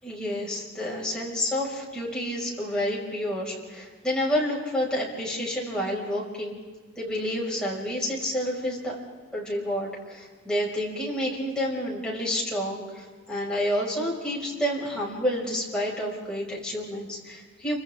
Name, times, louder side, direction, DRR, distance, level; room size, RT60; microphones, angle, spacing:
voice 1, 0.0-6.6 7.0-9.0 9.3-17.8, equal, 5° left, -5 dB, 6.0 m, -29 dB
29.0 x 26.5 x 3.8 m, 1.4 s
head